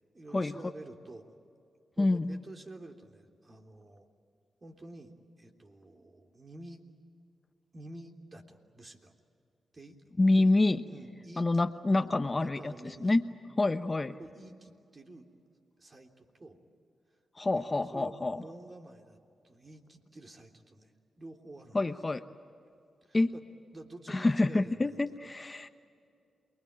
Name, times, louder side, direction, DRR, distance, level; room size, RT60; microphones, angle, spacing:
voice 1, 0.1-1.4 1.9-4.1 4.6-6.8 7.7-9.1 9.7-10.5 10.9-11.7 11.9-13.2 14.2-15.3 15.8-16.6 17.5-17.7 17.9-19.2 19.4-21.9 23.1-23.4 23.7-25.0, right 2 dB, 40° right, 3 dB, 3.5 m, -49 dB
voice 2, 2.0-2.4 10.2-10.8 11.4-12.7 13.0-13.2 13.6-14.1 17.4-18.4 21.7-22.2 23.1-23.3 24.1-25.7, left 2 dB, 30° left, 9 dB, 1.0 m, -27 dB
28.5 x 21.0 x 9.0 m, 2.5 s
supercardioid pair, 50°, 0 cm